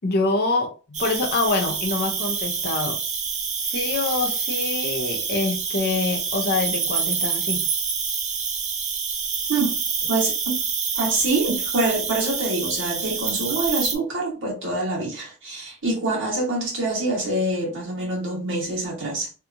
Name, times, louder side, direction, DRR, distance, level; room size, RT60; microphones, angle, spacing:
voice 1, 0.0-3.0 3.7-7.6, left 3 dB, 50° left, 0.6 m, -25 dB
Cricket, 0.9-14.0, right 6 dB, 35° right, 0.4 m, -27 dB
voice 2, 10.1-10.6 11.0-19.3, right 2 dB, 60° right, 1.2 m, -25 dB
2.8 x 2.3 x 2.5 m
head